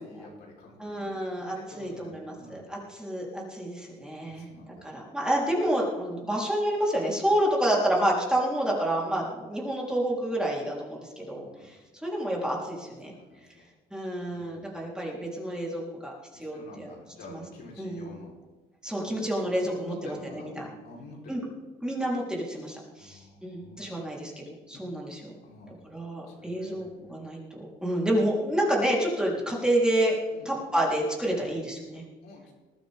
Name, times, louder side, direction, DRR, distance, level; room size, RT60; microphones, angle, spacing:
voice 1, 0.0-2.6 4.2-4.9 9.1-9.3 11.3-11.7 13.2-13.7 14.2-14.7 16.3-18.3 19.0-19.2 19.6-21.4 23.0-23.9 24.7-24.8 25.4-25.8 26.3-27.1 29.3-29.5 30.3-30.6 32.2-32.5, left 2 dB, 70° left, -1 dB, 4.1 m, -48 dB
voice 2, 0.8-4.5 4.8-13.1 13.9-16.9 17.3-17.4 17.8-18.1 18.8-20.7 21.3-21.4 21.8-25.3 25.9-27.4 27.8-30.2 30.5-32.0, right 1 dB, 5° right, -4 dB, 3.7 m, -29 dB
20.5 x 12.0 x 3.6 m, 1.2 s
cardioid pair, 110°, 17 cm